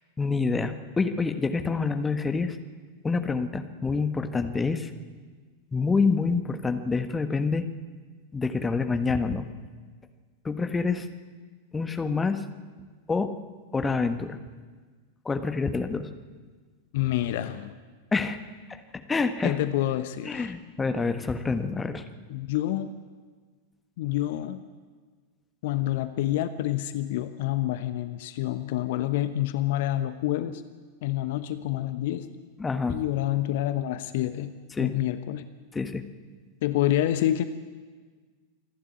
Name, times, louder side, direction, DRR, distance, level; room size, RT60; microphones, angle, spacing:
voice 1, 0.2-2.6 3.0-4.9 5.7-7.7 8.3-9.5 10.4-11.1 11.7-12.4 13.1-13.3 13.7-14.4 15.2-16.1 18.1-18.4 18.7-18.8 19.1-19.6 20.3-22.0 32.6-33.0 34.8-34.9 35.7-36.0, left 4 dB, 15° left, 8 dB, 1.4 m, -27 dB
voice 2, 16.9-17.8 19.4-20.5 22.3-22.9 24.0-24.6 25.6-30.6 31.0-32.3 32.9-35.4 36.6-37.4, left 13 dB, 50° left, 11 dB, 1.0 m, -28 dB
26.5 x 11.5 x 9.6 m, 1.5 s
figure-of-eight pair, 90°, 0 cm